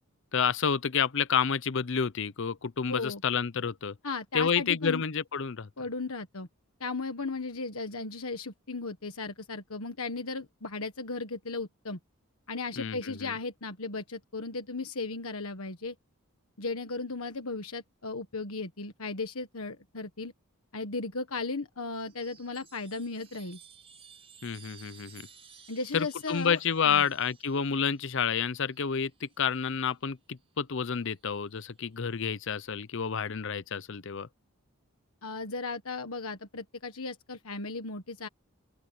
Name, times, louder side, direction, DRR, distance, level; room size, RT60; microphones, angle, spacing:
voice 1, 0.3-3.9 4.3-5.7 12.8-13.3 24.4-25.3 25.9-34.3, left 6 dB, 55° left, 0.6 m, -29 dB
voice 2, 2.9-3.2 4.0-5.0 5.8-6.5 6.8-12.0 12.5-15.9 16.6-20.3 20.7-23.6 25.7-26.6 26.8-27.0 35.2-38.3, left 3 dB, 75° left, 1.5 m, -36 dB
Chime, 22.0-29.8 31.0-31.6, right 6 dB, 25° right, 4.2 m, -56 dB
open air
head